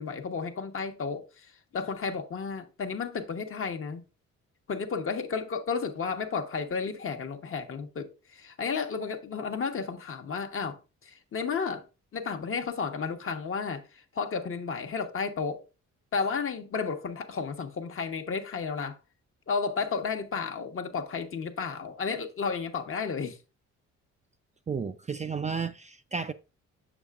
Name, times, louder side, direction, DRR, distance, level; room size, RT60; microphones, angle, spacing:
voice 1, 0.0-4.0 4.7-11.8 12.1-15.6 16.1-19.0 19.5-23.4, left 5 dB, 45° left, 1.1 m, -32 dB
voice 2, 24.7-26.3, right 5 dB, 25° right, 0.4 m, -32 dB
7.1 x 6.5 x 2.4 m
cardioid pair, 90°, 30 cm